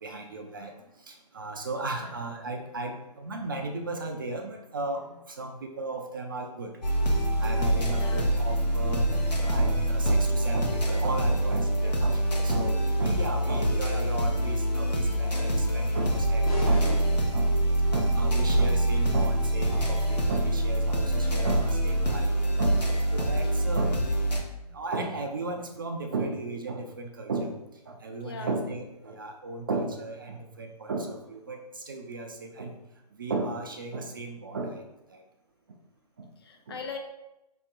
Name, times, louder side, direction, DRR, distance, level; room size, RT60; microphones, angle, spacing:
voice 1, 0.0-0.7 1.1-6.7 7.4-17.0 17.3-17.5 17.9-22.8 23.1-24.0 24.3-24.4 24.7-27.5 27.9-32.7 33.2-34.8 35.1-35.2 36.2-36.3 36.7-36.8, right 3 dB, 30° right, 3 dB, 0.4 m, -35 dB
sound 1, 6.8-24.4, right 1 dB, 80° left, 0.9 m, -25 dB
voice 2, 8.0-8.5 11.7-12.0 21.3-21.5 23.9-24.0 28.2-28.5 36.4-37.0, left 5 dB, 35° left, 3 dB, 0.5 m, -41 dB
sound 2, 16.4-17.9, left 2 dB, 60° left, 1.2 m, -38 dB
4.2 x 2.9 x 3.5 m, 0.93 s
figure-of-eight pair, 135°, 21 cm